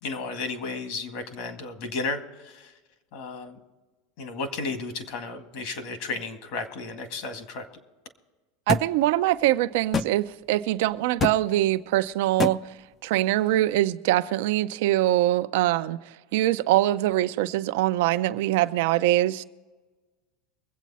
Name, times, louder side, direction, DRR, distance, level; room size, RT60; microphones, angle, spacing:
voice 1, 0.0-2.7 3.1-3.6 4.2-7.8, left 3 dB, 60° left, 1.9 m, -33 dB
sound 1, 8.7-8.9 9.9-10.1 11.2-11.4 12.4-12.6, left 5 dB, 25° left, 0.5 m, -25 dB
voice 2, 8.7-12.7 13.0-16.0 16.3-19.4, right 15 dB, 70° right, 0.6 m, -23 dB
23.5 x 8.3 x 4.2 m
supercardioid pair, 145°, 0 cm